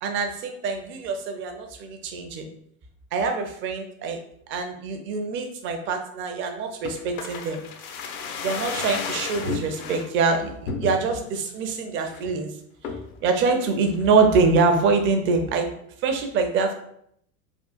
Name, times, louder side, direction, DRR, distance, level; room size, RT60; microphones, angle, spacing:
voice 1, 0.0-2.5 3.1-4.2 4.5-7.6 8.4-12.5 13.2-15.7 16.0-16.7, right 4 dB, 30° right, 5 dB, 0.4 m, -24 dB
sound 1, 6.8-10.1 10.7-11.3 11.7-11.8 12.0-12.4 12.8-13.2 13.6-14.3 14.6-14.7, left 4 dB, 70° left, 0.6 m, -33 dB
3.5 x 2.3 x 2.4 m, 0.69 s
hypercardioid pair, 90°, 45 cm